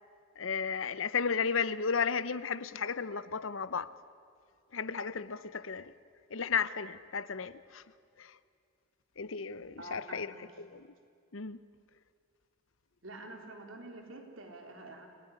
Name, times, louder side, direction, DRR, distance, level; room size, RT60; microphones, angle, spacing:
voice 1, 0.4-3.9 4.7-5.9 6.3-7.8 8.2-8.4 9.2-10.3 10.6-10.9 11.3-11.6, left 6 dB, 80° left, 0.8 m, -34 dB
voice 2, 9.8-10.4 13.0-15.1, right 2 dB, 80° right, 3.6 m, -47 dB
29.5 x 18.5 x 9.8 m
head